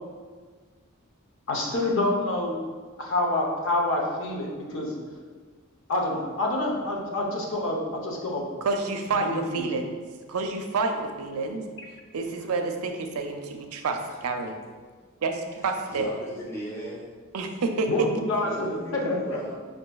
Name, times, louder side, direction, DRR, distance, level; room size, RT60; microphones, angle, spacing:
voice 1, 1.5-2.6 3.0-4.9 5.9-8.4 9.1-9.6 17.9-19.2, left 2 dB, 60° left, -1 dB, 0.7 m, -27 dB
voice 2, 8.6-10.0 10.3-11.6 12.1-14.6 15.2-16.1 17.3-17.5 17.8-17.9, right 3 dB, 85° right, 5 dB, 0.4 m, -29 dB
voice 3, 15.9-17.2 18.4-19.5, right 1 dB, 10° left, -6 dB, 0.7 m, -36 dB
5.4 x 2.5 x 2.3 m, 1.5 s
head